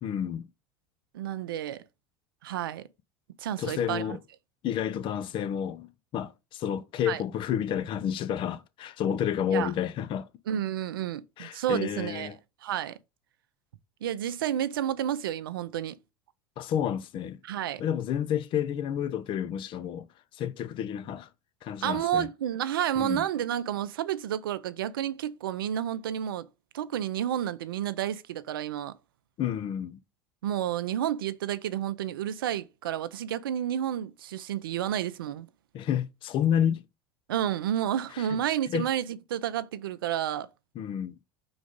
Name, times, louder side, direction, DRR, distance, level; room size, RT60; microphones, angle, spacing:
voice 1, 0.0-0.5 3.6-4.2 4.6-10.3 11.4-12.4 16.6-17.4 17.8-20.1 20.3-21.3 21.6-22.3 23.0-23.2 29.4-30.0 35.7-36.8 38.1-38.4 38.7-38.9 40.8-41.2, left 9 dB, 50° left, 0.6 m, -30 dB
voice 2, 1.1-1.8 2.4-2.8 3.4-4.2 7.1-7.2 9.5-9.7 10.5-12.3 12.6-13.0 14.0-16.0 17.4-17.8 21.8-26.5 26.7-28.9 30.4-35.5 37.3-40.5, right 10 dB, 90° right, 0.5 m, -30 dB
5.1 x 3.9 x 5.0 m
hypercardioid pair, 90°, 11 cm